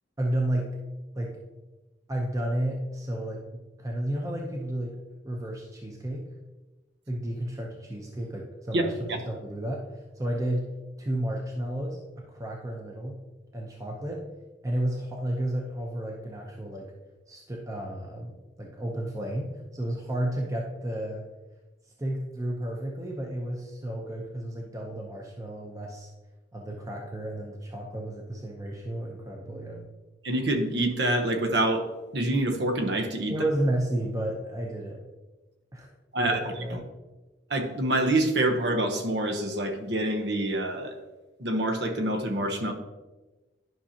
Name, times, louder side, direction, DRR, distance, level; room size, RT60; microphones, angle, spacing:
voice 1, 0.2-0.7 1.1-1.3 2.1-4.9 5.2-6.3 7.1-9.8 10.2-10.6 11.0-13.2 13.5-14.2 14.6-16.8 17.3-21.3 22.0-26.1 26.5-29.8 33.3-35.0 35.7-35.9 36.2-36.8, right 1 dB, 20° right, 0 dB, 0.8 m, -32 dB
voice 2, 30.2-31.9 32.1-33.3 36.1-36.4 36.7-36.8 37.5-40.9 41.4-42.7, right 1 dB, 65° right, 5 dB, 1.0 m, -26 dB
11.0 x 5.6 x 2.9 m, 1.1 s
head